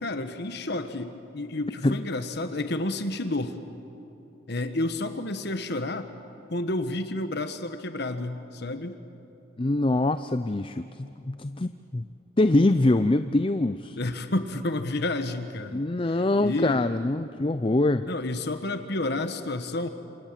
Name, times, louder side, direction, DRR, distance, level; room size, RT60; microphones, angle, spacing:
voice 1, 0.0-3.6 4.5-6.1 6.5-8.9 14.0-16.8 18.1-19.9, left 2 dB, 55° left, 8 dB, 1.2 m, -30 dB
voice 2, 9.6-12.0 12.4-14.0 15.7-18.1, left 2 dB, 25° left, 10 dB, 0.5 m, -24 dB
27.0 x 27.0 x 7.5 m, 3.0 s
head